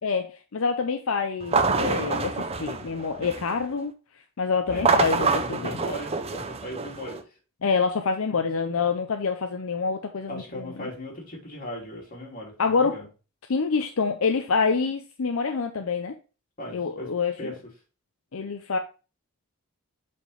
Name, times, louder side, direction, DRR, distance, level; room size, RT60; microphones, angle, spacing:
voice 1, 0.0-3.9 4.4-5.8 7.6-10.9 12.6-13.0 13.5-16.2 16.7-17.6 18.3-18.8, left 5 dB, 70° left, 6 dB, 0.6 m, -26 dB
sound 1, 1.4-3.6 4.7-7.2, right 4 dB, 30° right, 0.6 m, -26 dB
voice 2, 4.7-7.2 10.3-13.1 16.6-17.1 17.4-17.6, equal, 40° left, -2 dB, 2.6 m, -37 dB
8.1 x 4.4 x 3.2 m, 0.33 s
head